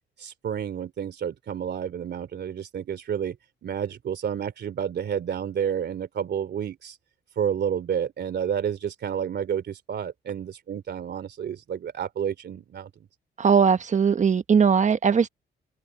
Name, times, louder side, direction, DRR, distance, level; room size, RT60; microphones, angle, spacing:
voice 1, 0.2-3.4 3.6-7.0 7.4-12.9, right 8 dB, 60° right, 2.9 m, -30 dB
voice 2, 13.4-15.3, right 6 dB, 40° right, 1.2 m, -19 dB
open air
cardioid pair, 90°, 20 cm